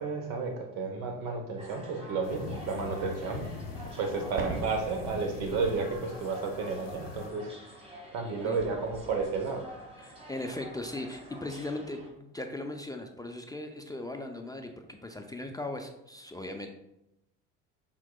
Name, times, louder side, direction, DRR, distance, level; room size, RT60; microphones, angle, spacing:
voice 1, 0.0-3.5 4.0-7.5 8.1-9.7, right 4 dB, 75° right, 4 dB, 1.0 m, -32 dB
sound 1, 1.6-12.1, equal, 15° right, 1.5 m, -48 dB
sound 2, 2.2-7.3, left 6 dB, 70° left, 0.6 m, -43 dB
sound 3, 4.3-11.0 11.4-11.5 11.9-12.0, right 3 dB, 35° right, 1.0 m, -46 dB
voice 2, 10.0-16.7, left 2 dB, 10° left, 4 dB, 0.4 m, -38 dB
5.9 x 3.7 x 2.2 m, 0.87 s
hypercardioid pair, 75°, 35 cm